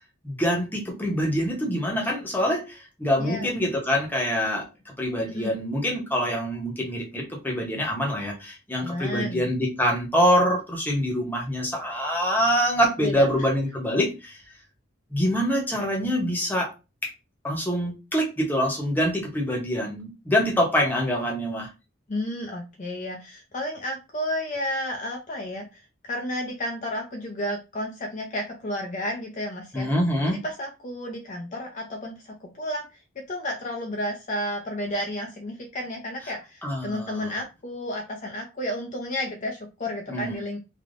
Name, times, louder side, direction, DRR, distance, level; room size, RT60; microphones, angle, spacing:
voice 1, 0.2-4.7 5.0-14.3 15.1-16.7 17.0-17.1 17.4-21.7 29.7-30.4 36.6-37.4 40.1-40.3, equal, 10° left, -1 dB, 0.9 m, -25 dB
voice 2, 3.2-3.5 5.3-5.6 8.8-9.5 13.0-13.5 22.1-29.9 30.3-40.6, left 1 dB, 40° left, 1 dB, 0.6 m, -32 dB
3.3 x 2.9 x 2.5 m, 0.27 s
head